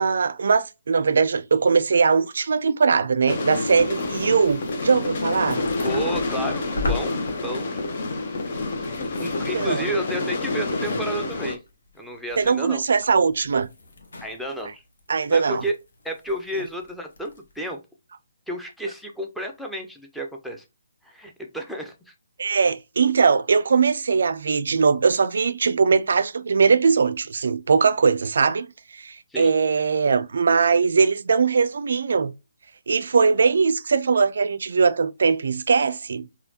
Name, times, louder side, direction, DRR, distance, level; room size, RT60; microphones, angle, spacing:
voice 1, 0.0-5.6 9.5-9.9 12.4-13.7 15.1-15.6 22.4-32.3 32.9-36.3, right 5 dB, 60° right, 0.4 m, -20 dB
sound 1, 3.3-11.6, left 2 dB, 50° left, 0.7 m, -28 dB
sound 2, 3.5-9.5 9.8-11.3 11.7-11.8 12.1-12.6 12.9-14.6 15.0-15.7 16.1-16.9 17.2-17.7, left 2 dB, 70° left, 1.1 m, -35 dB
voice 2, 5.8-7.1 7.4-7.7 9.2-11.6 11.9-12.8 14.2-14.8 15.3-15.8 16.0-17.8 18.5-20.6 21.0-22.1 29.3-29.5, right 1 dB, ahead, 0.6 m, -31 dB
4.1 x 2.3 x 2.7 m
figure-of-eight pair, 135°, 0 cm